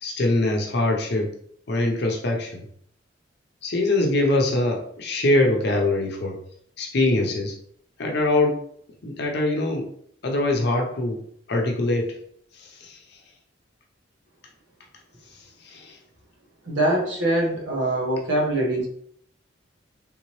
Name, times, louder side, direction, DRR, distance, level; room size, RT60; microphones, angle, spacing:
voice 1, 0.0-1.3 1.7-2.6 3.6-6.4 6.8-7.5 8.0-8.6 9.0-9.9 10.2-11.2 11.5-12.1 12.5-13.2 15.6-16.0, left 2 dB, 60° left, 1 dB, 0.6 m, -23 dB
voice 2, 16.6-18.9, right 1 dB, 80° right, -2 dB, 1.3 m, -23 dB
3.6 x 2.9 x 3.0 m, 0.64 s
head